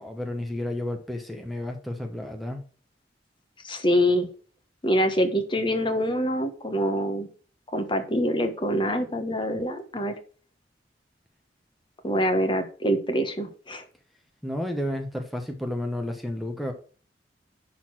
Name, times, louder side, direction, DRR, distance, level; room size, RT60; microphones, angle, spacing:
voice 1, 0.0-2.6 14.4-16.7, left 1 dB, ahead, 4 dB, 1.2 m, -31 dB
voice 2, 3.6-4.3 4.8-7.3 7.7-10.1 12.0-13.8, equal, 30° left, 8 dB, 1.4 m, -25 dB
11.0 x 4.1 x 6.0 m, 0.40 s
head